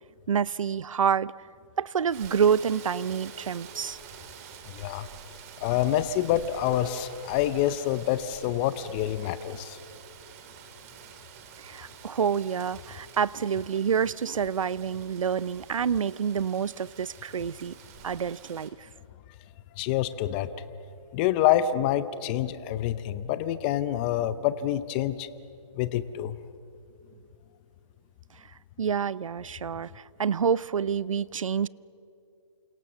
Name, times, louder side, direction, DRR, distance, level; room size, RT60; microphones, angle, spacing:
voice 1, 0.3-1.3 1.8-4.0 11.6-17.7 18.0-18.9 28.4-28.5 28.8-31.7, right 7 dB, 80° right, 0.7 m, -28 dB
Rain, 2.1-18.7, right 8 dB, 30° right, 2.5 m, -48 dB
voice 2, 4.7-5.1 5.6-9.8 19.8-20.5 21.1-25.3 25.8-26.4, left 12 dB, 20° left, 0.6 m, -27 dB
29.0 x 26.5 x 7.1 m
hypercardioid pair, 160°, 17 cm